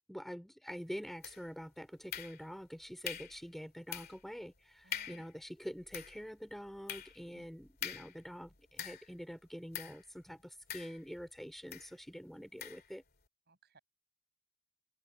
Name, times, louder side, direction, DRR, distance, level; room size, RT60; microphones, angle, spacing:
voice 1, 0.0-13.0, equal, ahead, 4.7 m, -46 dB
sound 1, 1.2-1.6 2.1-2.7 3.0-3.4 3.9-4.3 4.6-4.7 4.9-5.3 5.7-9.2 9.7-10.1 10.7-11.3 11.7-11.9 12.6-12.9, left 9 dB, 45° left, 2.3 m, -44 dB
voice 2, 4.8-5.2 7.3-7.4 13.5-13.8, right 2 dB, 50° right, 6.1 m, -62 dB
head